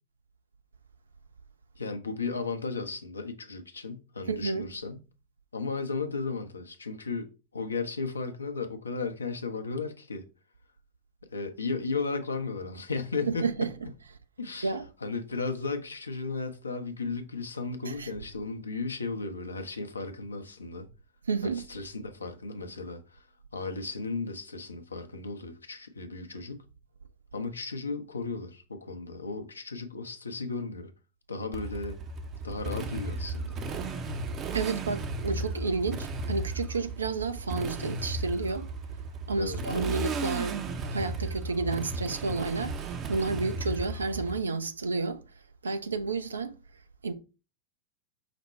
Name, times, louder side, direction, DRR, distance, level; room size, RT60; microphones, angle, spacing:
voice 1, 1.8-5.0 5.5-10.3 11.3-13.7 14.4-14.7 15.0-20.9 21.4-23.2 23.5-26.7 27.3-30.9 31.3-32.0 32.4-33.6 39.4-39.6, left 4 dB, 75° left, 0.6 m, -35 dB
voice 2, 4.3-4.7 13.3-13.7 14.6-14.8 17.9-18.1 21.3-21.6 34.5-38.7 39.3-45.2 45.6-46.5 47.0-47.1, right 3 dB, 75° right, 0.5 m, -31 dB
Motorcycle, 31.5-44.4, right 3 dB, 30° right, 0.6 m, -35 dB
5.0 x 2.1 x 4.2 m
figure-of-eight pair, 90°, 0 cm